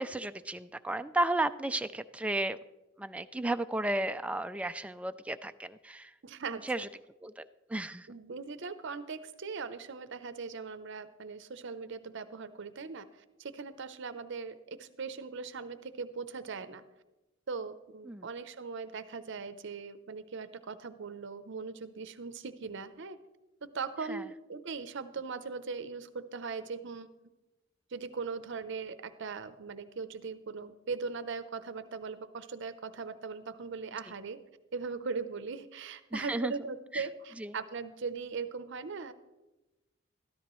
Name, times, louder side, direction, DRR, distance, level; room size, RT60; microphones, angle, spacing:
voice 1, 0.0-2.6 3.0-6.1 6.5-6.9 7.2-8.1 18.1-18.3 24.1-24.2 36.1-36.5 36.9-37.1 37.4-37.6, right 1 dB, 5° right, 10 dB, 0.3 m, -33 dB
voice 2, 6.2-6.9 8.1-16.8 17.5-23.2 23.6-27.1 27.9-34.4 34.7-39.1, right 5 dB, 65° right, 12 dB, 0.7 m, -40 dB
13.0 x 13.0 x 3.1 m, 1.0 s
head